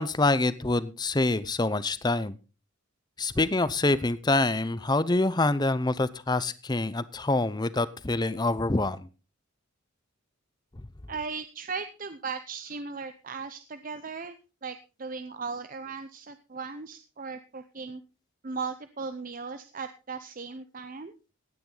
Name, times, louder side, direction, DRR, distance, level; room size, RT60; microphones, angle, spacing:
voice 1, 0.0-2.3 3.2-9.0, left 2 dB, 20° left, 16 dB, 0.7 m, -26 dB
voice 2, 11.1-14.4 14.6-18.0 18.4-21.1, right 4 dB, 40° right, 10 dB, 0.7 m, -37 dB
16.5 x 10.0 x 3.9 m, 0.32 s
head